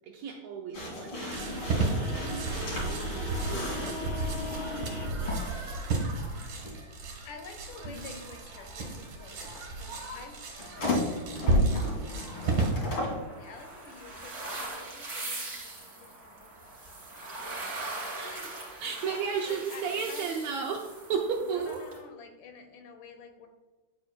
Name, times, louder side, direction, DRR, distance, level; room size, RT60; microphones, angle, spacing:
voice 1, 0.0-2.5 2.9-5.9 6.3-6.5 18.1-18.5 18.8-21.8, right 6 dB, 80° right, 1 dB, 1.6 m, -35 dB
sound 1, 0.7-5.5 6.6-6.7 10.6-13.2, left 2 dB, 45° left, 2.9 m, -35 dB
sound 2, 1.3-12.7, right 2 dB, 50° right, 2.1 m, -32 dB
voice 2, 7.2-18.8 19.4-20.3 20.6-20.7 21.6-23.5, left 4 dB, 75° left, 5 dB, 2.4 m, -50 dB
sound 3, 12.3-22.0, right 2 dB, 30° right, 2.9 m, -41 dB
9.7 x 7.6 x 2.2 m, 1.2 s
omnidirectional pair, 3.8 m